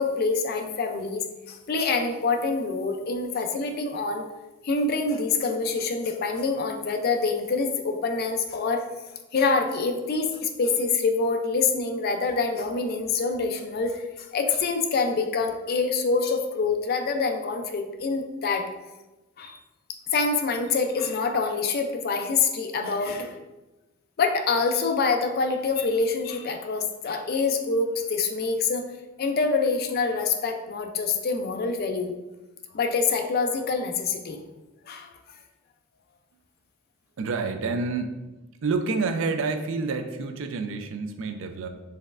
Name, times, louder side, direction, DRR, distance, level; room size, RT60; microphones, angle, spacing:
voice 1, 0.0-4.2 4.6-8.9 9.3-18.7 19.4-19.6 20.1-23.3 24.2-28.9 29.2-32.1 32.7-34.4 34.9-35.1, left 4 dB, 50° left, 5 dB, 0.4 m, -26 dB
voice 2, 37.2-38.1 38.6-41.7, right 4 dB, 70° right, 7 dB, 0.4 m, -28 dB
4.1 x 3.2 x 2.4 m, 1.1 s
head